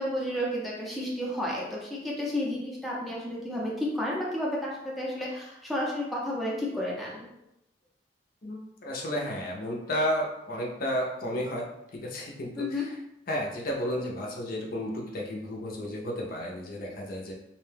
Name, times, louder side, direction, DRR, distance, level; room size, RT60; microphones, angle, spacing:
voice 1, 0.0-7.3 12.6-12.8, left 1 dB, ahead, -5 dB, 0.5 m, -31 dB
voice 2, 8.4-11.6 11.9-12.9 13.3-17.3, equal, 50° left, -1 dB, 0.5 m, -32 dB
2.6 x 2.1 x 3.2 m, 0.87 s
head